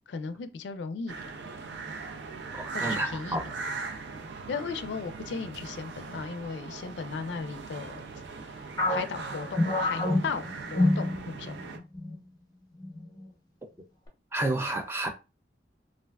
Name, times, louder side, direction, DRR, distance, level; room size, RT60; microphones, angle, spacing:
voice 1, 0.1-1.3 2.7-3.4 4.5-8.0 8.5-8.6 8.9-10.4 10.7-11.8, left 5 dB, 80° left, 0.4 m, -36 dB
sound 1, 1.1-11.8, right 4 dB, 80° right, 0.5 m, -39 dB
voice 2, 2.5-3.5 14.3-15.1, right 1 dB, 15° right, 0.4 m, -30 dB
sound 2, 8.8-11.6 11.9-12.2 12.8-13.3, left 2 dB, 20° left, 0.6 m, -27 dB
3.3 x 2.4 x 2.2 m
head